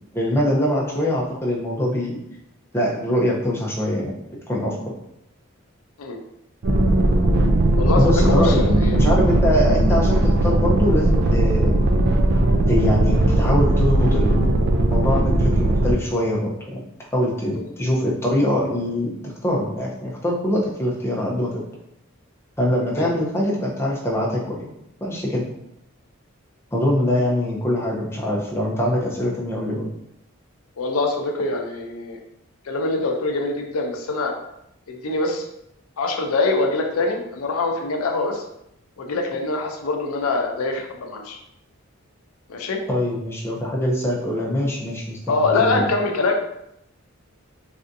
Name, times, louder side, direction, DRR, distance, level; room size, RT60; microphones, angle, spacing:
voice 1, 0.1-2.2 2.7-4.2 4.5-4.9 8.0-11.8 12.7-14.5 14.9-16.8 17.1-21.6 22.6-24.7 25.0-25.4 26.7-29.9 42.9-45.9, left 1 dB, 10° left, -4 dB, 0.5 m, -23 dB
sound 1, 6.6-15.9, right 1 dB, 50° right, 0.4 m, -18 dB
voice 2, 7.8-9.0 23.0-23.1 30.8-32.2 32.7-34.3 34.9-35.4 36.0-38.4 39.0-41.4 42.5-42.8 45.3-46.4, left 3 dB, 80° left, 2 dB, 0.5 m, -24 dB
3.3 x 2.5 x 2.6 m, 0.79 s
head